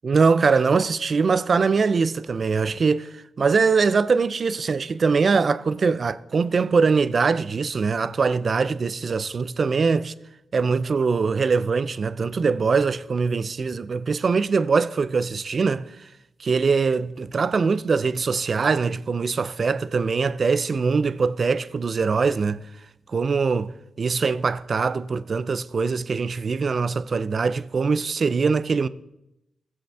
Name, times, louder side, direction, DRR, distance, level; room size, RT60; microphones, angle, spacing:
voice 1, 0.0-10.1 10.5-16.1 16.4-22.6 23.1-28.9, right 5 dB, 55° right, 0.4 m, -22 dB
13.5 x 7.6 x 3.5 m
supercardioid pair, 50°, 0 cm